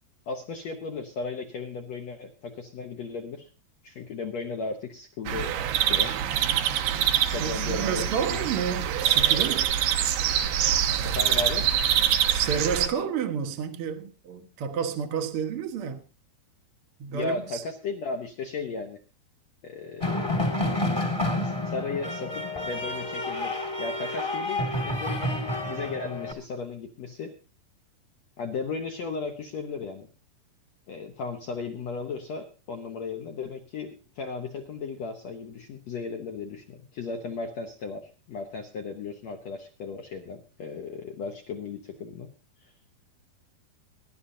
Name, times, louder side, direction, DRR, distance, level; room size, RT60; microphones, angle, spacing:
voice 1, 0.3-3.5 3.8-6.1 7.3-8.0 8.3-8.4 11.0-11.6 17.1-19.0 19.6-20.3 21.3-27.3 28.4-30.1 30.9-42.3 42.6-42.7, left 4 dB, 75° left, 1.5 m, -35 dB
sound 1, 5.3-12.9, right 10 dB, 80° right, 3.0 m, -25 dB
voice 2, 7.4-9.7 12.3-16.0 17.0-17.6, right 7 dB, 65° right, 1.4 m, -30 dB
sound 2, 20.0-26.3, left 1 dB, 15° left, 1.1 m, -29 dB
23.5 x 11.5 x 2.7 m
omnidirectional pair, 4.7 m